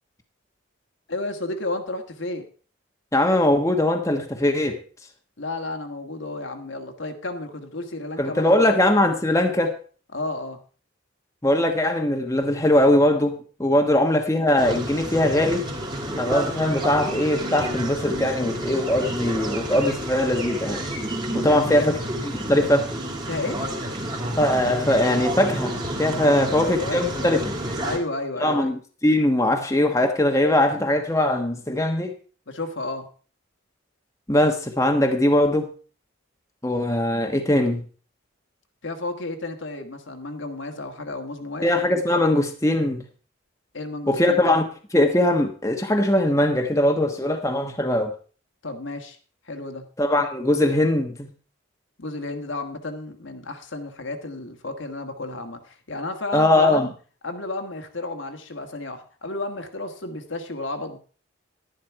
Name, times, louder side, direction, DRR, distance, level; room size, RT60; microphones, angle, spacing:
voice 1, 1.1-2.4 5.4-8.7 10.1-10.6 13.8-14.1 21.3-21.9 23.3-23.7 26.2-27.4 27.8-28.7 32.5-33.1 38.8-41.7 43.7-44.5 48.6-49.2 49.4-49.8 52.0-56.9 57.2-61.0, left 2 dB, 65° left, 5 dB, 1.5 m, -32 dB
voice 2, 3.1-4.8 8.2-9.8 11.4-15.6 16.2-20.8 21.4-22.0 22.5-22.9 24.4-25.7 26.0-27.5 28.4-32.1 34.3-35.7 36.6-37.8 41.6-43.1 44.1-44.6 44.9-48.1 50.0-51.3 56.3-56.9, left 1 dB, 15° left, 4 dB, 1.2 m, -21 dB
sound 1, 14.6-28.0, right 1 dB, 20° right, 2.2 m, -30 dB
11.5 x 11.0 x 4.6 m, 0.39 s
head